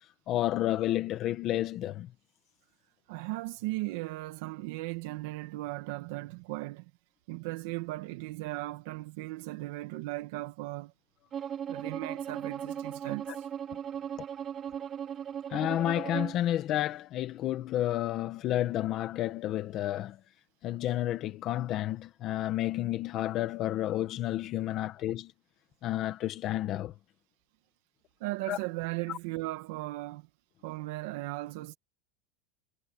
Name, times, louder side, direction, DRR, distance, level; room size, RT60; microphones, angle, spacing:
voice 1, 0.3-2.1 13.3-13.4 15.5-20.2 20.6-25.3 25.8-26.9 28.5-28.6, left 13 dB, 30° left, 1.4 m, -31 dB
voice 2, 3.1-6.9 7.3-10.9 11.7-13.5 28.2-30.3 30.6-31.8, right 19 dB, 55° right, 1.4 m, -37 dB
Bowed string instrument, 11.3-16.4, right 8 dB, 20° right, 4.6 m, -37 dB
supercardioid pair, 170°, 0 cm